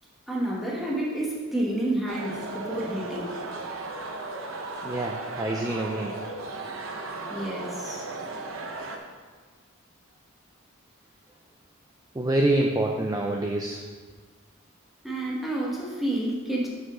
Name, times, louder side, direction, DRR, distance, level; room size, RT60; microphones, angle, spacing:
voice 1, 0.3-3.4 7.3-8.1 15.0-16.7, right 1 dB, ahead, -5 dB, 1.3 m, -29 dB
sound 1, 2.1-9.0, right 3 dB, 65° right, 0.8 m, -36 dB
voice 2, 4.8-6.2 12.1-13.8, right 1 dB, 15° right, 0 dB, 0.4 m, -26 dB
6.1 x 5.0 x 6.3 m, 1.4 s
head